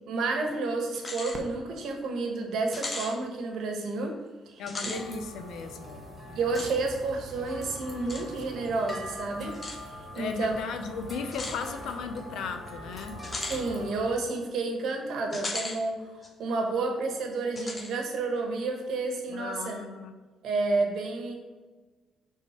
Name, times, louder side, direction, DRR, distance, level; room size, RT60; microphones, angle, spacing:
voice 1, 0.1-4.2 4.5-5.0 5.7-5.8 6.3-9.5 10.1-10.5 13.4-19.8 20.4-21.4, right 3 dB, 75° right, 3 dB, 1.1 m, -30 dB
sound 1, 0.9-1.4 1.8-1.9 2.7-3.1 4.6-5.0 6.5-6.7 8.1-8.2 9.5-9.8 11.3-11.6 13.2-13.6 15.3-15.8 16.2-16.3 17.6-17.9, left 2 dB, 30° left, 0.9 m, -36 dB
Fireworks, 1.3-4.1 4.8-4.9 5.5-6.0 7.9-8.0, right 2 dB, 35° right, 0.9 m, -49 dB
voice 2, 4.6-6.4 10.1-13.2 19.3-20.1, left 5 dB, 80° left, 7 dB, 0.6 m, -36 dB
sound 2, 4.9-14.2, equal, 15° left, 1.4 m, -43 dB
6.2 x 3.7 x 4.3 m, 1.3 s
cardioid pair, 90°, 0 cm